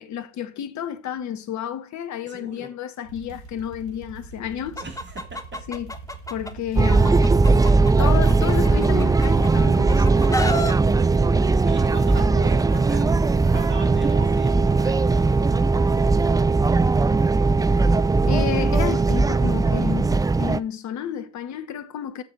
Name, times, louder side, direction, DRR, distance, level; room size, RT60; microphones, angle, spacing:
voice 1, 0.0-4.8 5.7-5.9 6.3-7.2 8.0-10.1 18.3-22.2, left 9 dB, 55° left, 1.2 m, -31 dB
voice 2, 2.2-2.7 4.8-5.4 11.4-13.0 13.5-15.3, right 2 dB, 35° right, 3.3 m, -38 dB
sound 1, 3.0-16.3, right 4 dB, 85° right, 2.1 m, -43 dB
Chicken rooster, 4.8-6.5 6.9-9.5 9.9-10.7, left 1 dB, 10° left, 1.3 m, -30 dB
sound 2, 6.8-20.6, right 3 dB, 10° right, 0.4 m, -19 dB
7.7 x 7.3 x 4.2 m
figure-of-eight pair, 45°, 33 cm